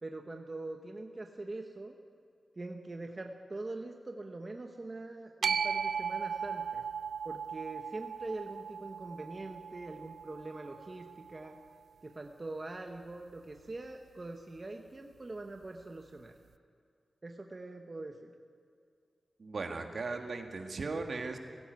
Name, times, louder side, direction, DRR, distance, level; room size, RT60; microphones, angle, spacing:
voice 1, 0.0-2.0 2.6-6.8 7.2-11.6 12.0-16.3 17.2-18.4, right 2 dB, 30° right, 4 dB, 1.0 m, -43 dB
sound 1, 5.4-11.7, right 7 dB, 90° right, 0.4 m, -37 dB
voice 2, 19.4-21.4, right 3 dB, 55° right, 4 dB, 1.9 m, -37 dB
17.0 x 16.5 x 9.4 m, 2.4 s
wide cardioid pair, 125°, 0 cm